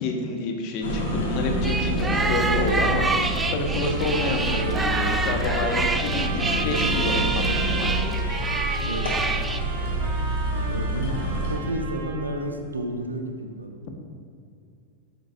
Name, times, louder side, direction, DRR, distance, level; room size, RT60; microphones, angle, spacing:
voice 1, 0.0-3.1 3.5-8.0, left 3 dB, 45° left, 3 dB, 1.0 m, -29 dB
sound 1, 0.8-11.6, right 1 dB, 60° left, 1.4 m, -27 dB
sound 2, 1.6-9.6, right 3 dB, 15° right, 0.4 m, -27 dB
Trumpet, 3.8-12.5, right 3 dB, 50° right, 1.1 m, -36 dB
voice 2, 8.8-9.2 10.7-13.7, right 1 dB, 80° right, 5 dB, 0.7 m, -31 dB
9.0 x 7.4 x 2.4 m, 2.4 s
figure-of-eight pair, 90°, 0 cm